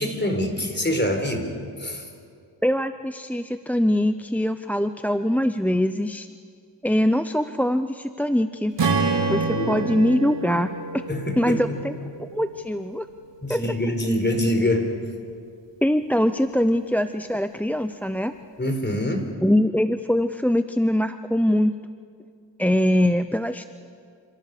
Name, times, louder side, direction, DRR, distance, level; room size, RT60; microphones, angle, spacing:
voice 1, 0.0-1.5 1.8-2.1 9.4-9.8 11.1-11.8 13.4-14.9 18.6-19.3, left 1 dB, 25° left, 4 dB, 4.3 m, -25 dB
voice 2, 2.6-6.3 6.8-8.7 9.3-11.0 11.4-13.1 13.5-13.6 15.8-18.3 19.4-21.7 22.6-23.7, equal, 5° left, 10 dB, 0.7 m, -23 dB
Strum, 8.8-13.0, right 4 dB, 70° right, 3.7 m, -27 dB
28.0 x 26.5 x 6.8 m, 2.3 s
wide cardioid pair, 80°, 44 cm